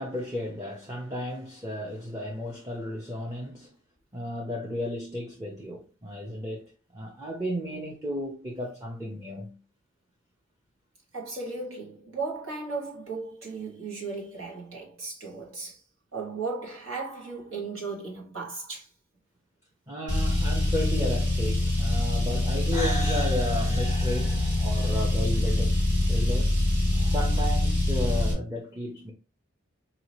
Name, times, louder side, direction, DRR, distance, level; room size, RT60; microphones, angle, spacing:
voice 1, 0.0-3.8 4.1-9.6 19.9-25.8 26.1-26.5 26.9-29.1, left 1 dB, 15° right, 0.7 m, -33 dB
voice 2, 11.1-15.8 16.1-18.9, right 4 dB, 80° right, 1.6 m, -36 dB
Car, 20.1-28.3, left 1 dB, 55° right, 1.6 m, -24 dB
4.8 x 2.8 x 3.0 m
head